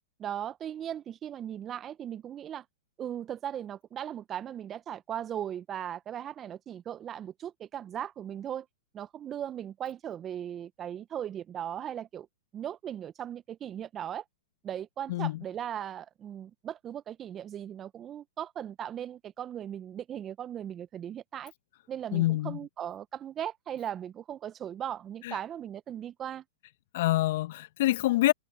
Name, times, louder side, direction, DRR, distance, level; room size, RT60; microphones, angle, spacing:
voice 1, 0.2-2.6 3.0-8.7 8.9-12.3 12.5-14.2 14.6-21.5 21.9-26.4, right 10 dB, 25° right, 1.0 m, -38 dB
voice 2, 15.1-15.4 22.1-22.6 25.2-25.3 26.9-28.3, left 16 dB, 60° left, 1.7 m, -26 dB
hypercardioid pair, 110°, 0 cm